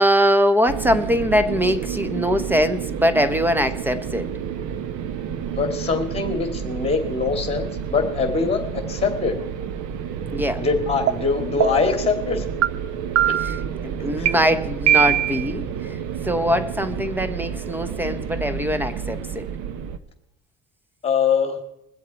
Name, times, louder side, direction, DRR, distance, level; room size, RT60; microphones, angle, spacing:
voice 1, 0.0-4.3 10.3-10.6 13.4-13.6 13.8-15.7 16.2-19.5, equal, 5° right, 0.8 m, -22 dB
sound 1, 0.7-20.0, right 8 dB, 75° right, 1.0 m, -30 dB
voice 2, 5.6-9.3 10.6-12.4 14.2-14.3 21.0-21.6, left 5 dB, 20° left, 2.6 m, -23 dB
sound 2, 11.1-11.2 11.6-12.0 12.6-12.7 13.2-13.6 14.3-14.4 14.9-15.5, right 11 dB, 55° right, 0.7 m, -19 dB
22.0 x 7.9 x 4.4 m
cardioid pair, 115°, 31 cm